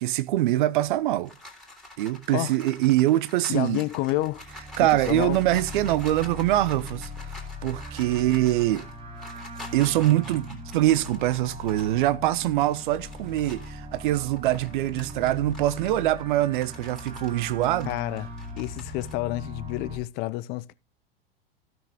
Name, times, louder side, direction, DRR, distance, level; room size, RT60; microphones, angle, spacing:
voice 1, 0.0-1.3 2.0-3.8 4.8-8.9 9.7-17.9, right 15 dB, 55° right, 0.7 m, -24 dB
sound 1, 0.8-13.8 14.2-19.1, left 2 dB, ahead, 3.0 m, -47 dB
voice 2, 3.5-4.4 4.8-5.4 17.9-18.3 18.6-20.7, left 18 dB, 30° left, 0.5 m, -29 dB
sound 2, 4.1-20.0, left 1 dB, 15° right, 1.7 m, -40 dB
15.5 x 6.2 x 3.6 m
figure-of-eight pair, 90°, 31 cm